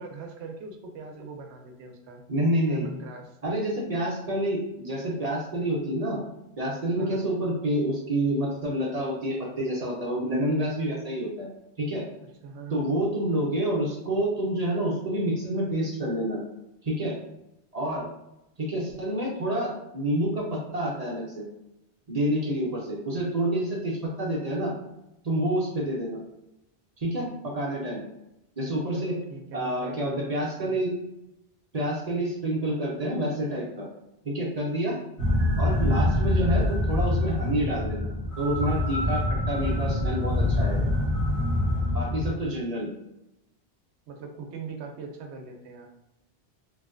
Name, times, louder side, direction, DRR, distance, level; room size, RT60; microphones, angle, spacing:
voice 1, 0.0-2.2 2.7-3.4 7.0-7.2 12.4-12.9 28.9-30.8 44.1-45.9, right 4 dB, 80° right, 3 dB, 0.9 m, -41 dB
voice 2, 2.3-2.9 3.4-6.2 6.6-11.5 11.8-12.0 12.7-16.4 16.8-17.1 17.7-18.0 18.6-21.4 22.1-24.7 25.2-26.2 27.0-28.0 28.6-29.1 29.5-30.9 31.7-33.9 34.2-35.0 35.6-38.1 38.4-40.9 41.9-42.9, right 1 dB, 40° right, -4 dB, 0.8 m, -28 dB
reverb tapping, 35.2-42.3, left 1 dB, 35° left, 1.5 m, -25 dB
3.1 x 2.7 x 2.4 m, 0.87 s
omnidirectional pair, 1.1 m